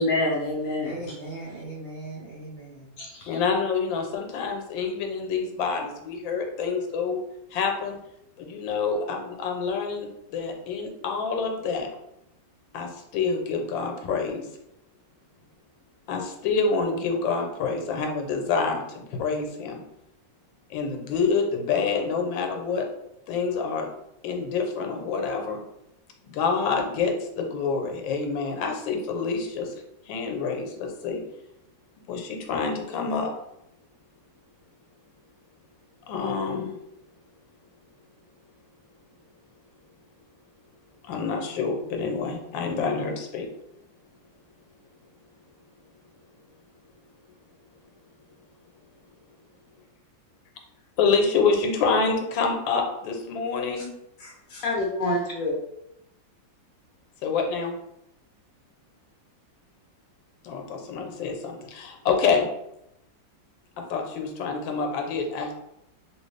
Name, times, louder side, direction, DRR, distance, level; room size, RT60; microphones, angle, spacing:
voice 1, 0.0-0.9 3.0-3.4 53.8-53.9 54.2-55.6, left 1 dB, 65° left, -2 dB, 0.9 m, -27 dB
voice 2, 0.8-2.9, right 2 dB, 75° right, -6 dB, 0.5 m, -38 dB
voice 3, 3.3-7.2 7.5-8.0 8.4-11.9 12.7-14.4 16.1-19.8 20.7-22.9 23.3-23.9 24.2-25.6 26.2-29.7 30.1-31.2 32.1-33.3 36.1-36.7 41.1-43.5 51.0-53.9 57.2-57.7 60.4-62.5 63.8-65.5, left 5 dB, 85° left, 3 dB, 1.3 m, -27 dB
2.9 x 2.9 x 3.2 m, 0.83 s
omnidirectional pair, 2.1 m